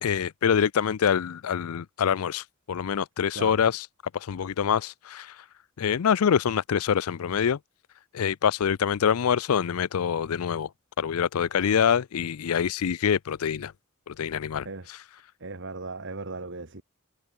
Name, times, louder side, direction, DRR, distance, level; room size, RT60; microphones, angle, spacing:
voice 1, 0.0-3.9 4.1-5.5 5.8-7.6 8.1-10.7 11.0-13.7 14.1-15.0, left 7 dB, 75° left, 0.4 m, -25 dB
voice 2, 15.4-16.8, right 3 dB, 55° right, 2.2 m, -37 dB
head